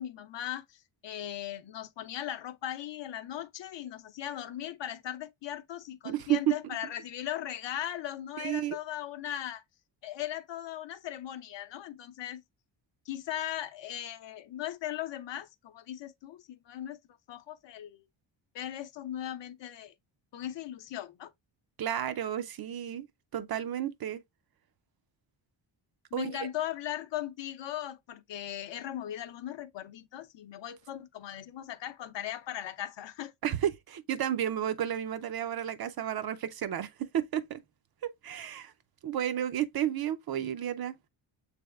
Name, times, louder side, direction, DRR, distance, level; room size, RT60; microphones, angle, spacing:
voice 1, 0.0-9.6 10.0-12.4 13.1-17.0 17.3-18.1 18.5-19.9 20.3-21.3 26.1-33.3, left 11 dB, 60° left, 0.6 m, -38 dB
voice 2, 6.0-6.7 8.4-8.8 21.8-23.1 23.3-24.2 26.1-26.5 33.4-37.6 38.0-38.7 39.0-40.9, right 10 dB, 50° right, 0.5 m, -32 dB
6.9 x 3.4 x 2.2 m
cardioid pair, 125°, 49 cm